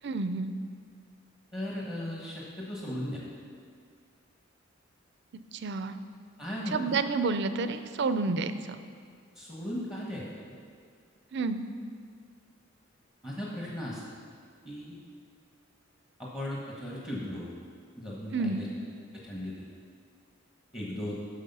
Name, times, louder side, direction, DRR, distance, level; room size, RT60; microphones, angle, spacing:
voice 1, 0.0-0.5 5.6-6.0 6.7-8.5 11.3-11.6 18.3-18.6, right 4 dB, 60° right, 11 dB, 0.5 m, -29 dB
voice 2, 1.5-3.2 6.4-7.0 9.3-10.3 13.2-14.0 14.6-15.0 16.2-17.5 18.0-18.7 19.2-19.5 20.7-21.1, left 1 dB, 25° left, -5 dB, 1.2 m, -36 dB
10.0 x 6.1 x 5.5 m, 2.1 s
head